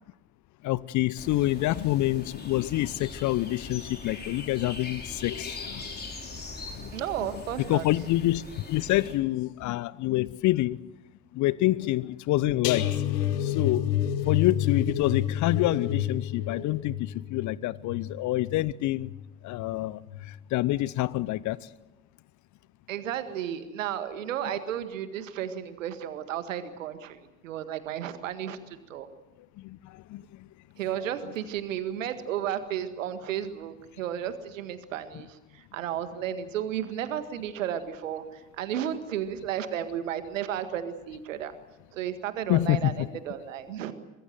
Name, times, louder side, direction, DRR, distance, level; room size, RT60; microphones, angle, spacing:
voice 1, 0.6-6.0 6.7-6.9 7.7-10.8 11.3-12.9 13.4-13.9 14.2-19.1 19.4-20.0 20.3-21.6 29.6-30.5 42.5-43.1, left 16 dB, 45° left, 0.8 m, -27 dB
sound 1, 1.2-9.2, left 3 dB, 25° left, 4.8 m, -41 dB
voice 2, 6.9-7.9 22.9-29.1 30.8-41.5 41.9-43.9, right 10 dB, 70° right, 1.9 m, -33 dB
sound 2, 12.6-19.7 20.1-20.4 20.7-20.8, left 11 dB, 65° left, 1.6 m, -29 dB
24.0 x 21.5 x 7.8 m
figure-of-eight pair, 55°, 40 cm